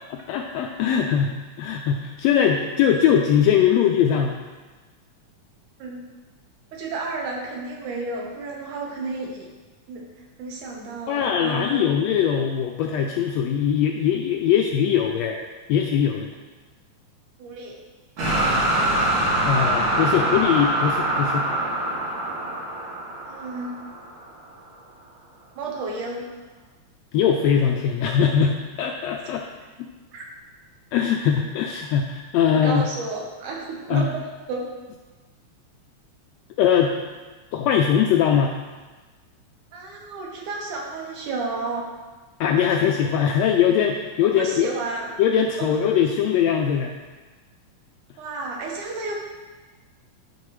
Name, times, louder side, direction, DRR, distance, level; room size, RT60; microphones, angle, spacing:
voice 1, 0.3-4.4 11.1-15.4 15.7-16.3 19.4-21.5 27.1-29.4 30.9-32.8 33.9-34.1 36.6-36.9 37.5-38.5 42.4-44.7 45.2-47.0, left 8 dB, 80° left, 2 dB, 1.5 m, -21 dB
voice 2, 6.7-9.5 9.9-10.0 10.4-11.9 17.4-17.8 23.3-23.8 25.6-26.3 29.2-29.4 30.1-30.2 32.5-34.1 34.5-34.6 39.7-41.9 44.2-45.1 45.6-45.7 48.2-49.2, right 3 dB, 90° right, -1 dB, 2.7 m, -32 dB
sound 1, 18.2-24.2, right 1 dB, 70° right, 3.0 m, -24 dB
10.5 x 5.1 x 3.2 m, 1.3 s
omnidirectional pair, 3.4 m